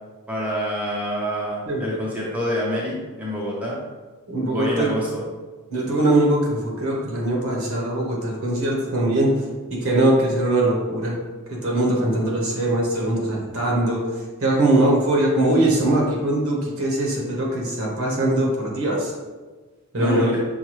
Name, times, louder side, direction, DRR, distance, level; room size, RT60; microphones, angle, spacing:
voice 1, 0.3-3.8 4.5-5.2 19.9-20.4, equal, 5° right, -5 dB, 0.6 m, -27 dB
voice 2, 1.7-2.0 4.3-4.9 5.7-11.2 11.5-14.1 14.4-19.1 19.9-20.3, right 1 dB, 65° right, -2 dB, 1.0 m, -21 dB
5.7 x 2.2 x 3.1 m, 1.3 s
head